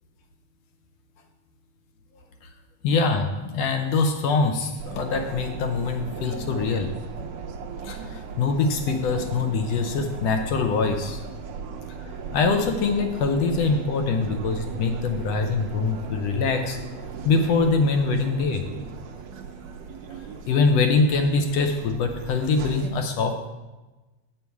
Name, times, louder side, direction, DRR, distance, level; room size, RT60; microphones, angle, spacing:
voice 1, 2.8-6.9 7.8-11.2 12.0-16.8 17.2-18.7 20.5-23.5, left 4 dB, 75° left, 5 dB, 1.6 m, -24 dB
sound 1, 4.8-22.9, right 5 dB, 70° right, 1.7 m, -37 dB
8.3 x 7.0 x 4.6 m, 1.1 s
omnidirectional pair, 3.4 m